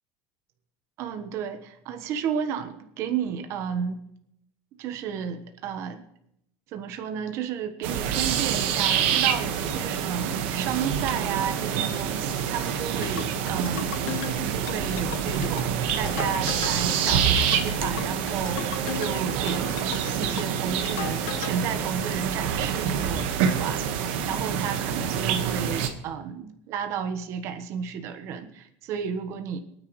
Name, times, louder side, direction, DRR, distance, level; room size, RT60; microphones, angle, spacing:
voice 1, 1.0-4.0 4.8-6.0 6.7-14.0 14.3-19.7 20.2-29.6, right 7 dB, 50° right, 7 dB, 1.2 m, -32 dB
sound 1, 7.8-25.9, right 8 dB, 80° right, 1.5 m, -27 dB
sound 2, 13.0-21.6, left 12 dB, 75° left, 0.7 m, -37 dB
25.0 x 9.6 x 3.2 m, 0.76 s
cardioid pair, 145°, 6 cm